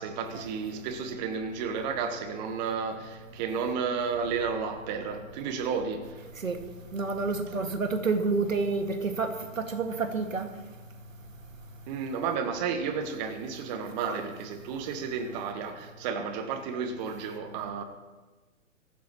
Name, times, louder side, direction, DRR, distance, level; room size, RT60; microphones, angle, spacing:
voice 1, 0.0-6.2 11.9-17.8, right 6 dB, 35° right, 1.4 m, -32 dB
voice 2, 6.9-10.5, right 4 dB, 75° right, 2.1 m, -29 dB
23.5 x 14.5 x 3.1 m
figure-of-eight pair, 120°, 40 cm